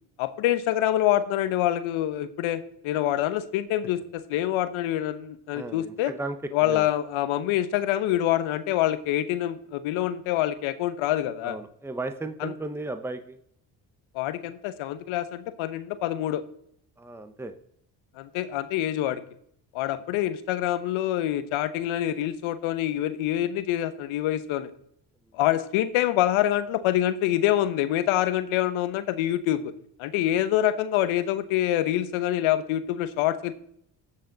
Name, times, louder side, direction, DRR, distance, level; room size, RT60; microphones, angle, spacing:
voice 1, 0.2-6.1 6.5-11.6 12.4-12.5 14.1-16.4 18.2-19.2 19.7-24.7 25.3-29.7 30.0-33.5, left 12 dB, 70° left, 12 dB, 1.1 m, -26 dB
voice 2, 5.5-6.4 6.6-6.9 11.4-13.4 17.0-17.5, right 2 dB, 5° right, 9 dB, 1.0 m, -35 dB
13.5 x 7.4 x 4.0 m, 0.68 s
hypercardioid pair, 55°, 49 cm